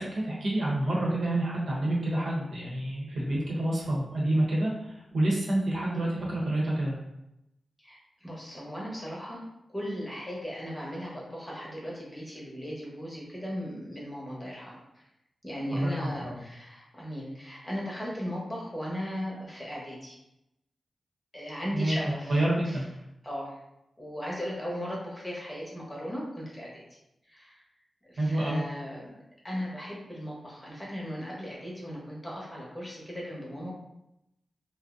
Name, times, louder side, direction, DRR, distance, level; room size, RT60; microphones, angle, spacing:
voice 1, 0.0-4.7 5.1-7.0 15.7-16.3 21.7-22.0 22.3-22.9 28.2-28.6, right 1 dB, 70° right, -4 dB, 0.9 m, -28 dB
voice 2, 7.8-9.4 9.7-15.0 15.4-20.2 21.3-22.8 23.2-23.6 24.0-26.8 27.3-27.6 28.1-29.1 29.4-33.7, equal, 15° left, -4 dB, 0.9 m, -37 dB
2.6 x 2.1 x 3.6 m, 0.86 s
wide cardioid pair, 110°, 0 cm